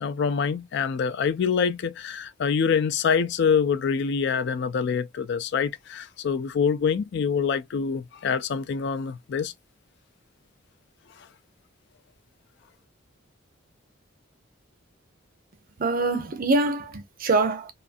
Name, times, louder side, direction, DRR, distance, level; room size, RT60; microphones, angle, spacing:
voice 1, 0.0-9.5, left 6 dB, 60° left, 0.3 m, -25 dB
voice 2, 15.8-17.7, right 3 dB, 45° right, 0.6 m, -24 dB
2.5 x 2.4 x 2.4 m
head